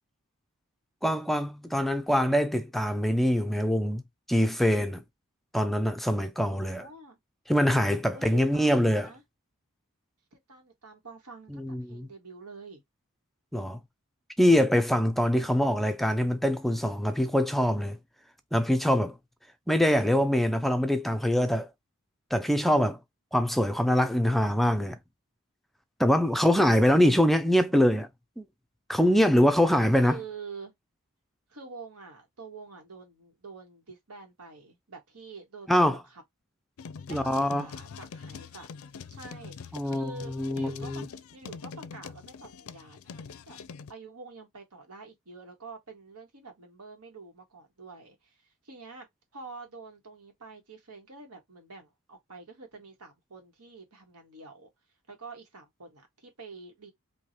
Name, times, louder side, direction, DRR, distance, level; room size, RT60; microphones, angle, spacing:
voice 1, 1.0-4.0 4.3-5.0 5.5-6.9 7.5-9.1 11.6-12.1 13.5-13.8 14.4-18.0 18.5-19.2 19.7-21.7 22.3-23.0 23.3-25.0 26.0-28.1 28.4-28.5 28.9-30.2 35.7-36.0 37.1-37.7 39.7-41.1, equal, ahead, 0.4 m, -24 dB
voice 2, 6.5-7.2 8.1-9.2 10.3-12.8 29.6-30.7 31.5-36.2 37.1-38.7 39.1-41.0 41.3-43.6 43.9-49.1 49.3-54.7 55.1-56.9, right 4 dB, 90° right, 1.7 m, -47 dB
sound 1, 36.8-43.9, left 5 dB, 70° left, 0.4 m, -44 dB
4.8 x 2.8 x 2.9 m
head